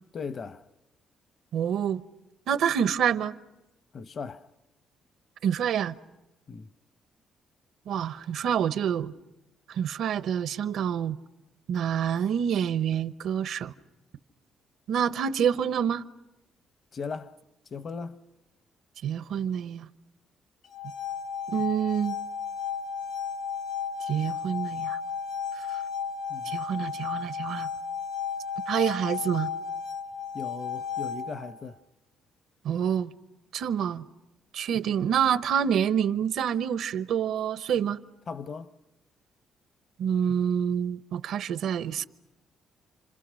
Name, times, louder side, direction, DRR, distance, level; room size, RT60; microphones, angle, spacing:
voice 1, 0.1-0.6 3.9-4.5 6.5-6.7 16.9-17.4 17.7-18.2 26.3-26.5 30.3-31.8 38.3-38.7, left 5 dB, 50° left, 0.9 m, -37 dB
voice 2, 1.5-2.0 2.5-3.4 5.4-5.9 7.9-9.1 9.7-11.2 11.7-13.7 14.9-16.1 19.0-19.9 21.5-22.2 24.0-25.0 25.5-25.8 26.4-27.7 28.7-29.5 32.6-33.1 33.5-34.0 34.5-38.0 40.0-42.0, right 8 dB, 75° right, 0.8 m, -27 dB
sound 1, 20.6-31.6, left 6 dB, 80° left, 3.0 m, -34 dB
29.5 x 26.5 x 6.3 m
cardioid pair, 90°, 0 cm